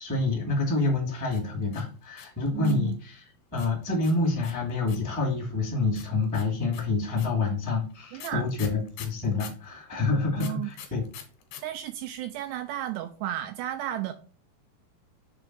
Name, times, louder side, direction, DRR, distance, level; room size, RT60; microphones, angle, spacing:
voice 1, 0.0-3.2 3.5-11.0, left 3 dB, 10° left, 0.7 m, -27 dB
sound 1, 1.3-2.9 3.6-5.2 6.0-9.7 10.4-11.6 11.9-12.0 12.2-12.6, left 9 dB, 70° left, 3.0 m, -44 dB
voice 2, 2.5-3.0 8.1-8.4 10.3-10.7 11.6-14.1, right 13 dB, 85° right, 2.4 m, -33 dB
6.8 x 3.5 x 6.2 m
omnidirectional pair, 5.4 m